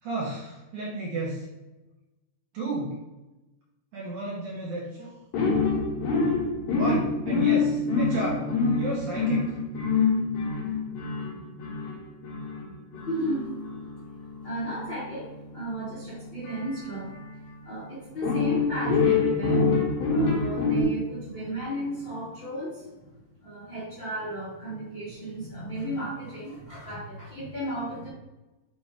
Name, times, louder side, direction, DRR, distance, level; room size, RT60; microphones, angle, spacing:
voice 1, 0.0-1.5 2.5-3.0 3.9-5.1 6.7-8.5 8.8-9.5, right 2 dB, 60° right, -5 dB, 2.3 m, -32 dB
sound 1, 5.3-17.5 18.2-20.8, left 4 dB, 70° left, 4.0 m, -26 dB
voice 2, 13.1-13.5 14.4-17.1 17.6-22.9 23.4-28.1, right 1 dB, 45° left, -9 dB, 1.7 m, -34 dB
9.2 x 3.2 x 4.8 m, 1.1 s
omnidirectional pair, 5.0 m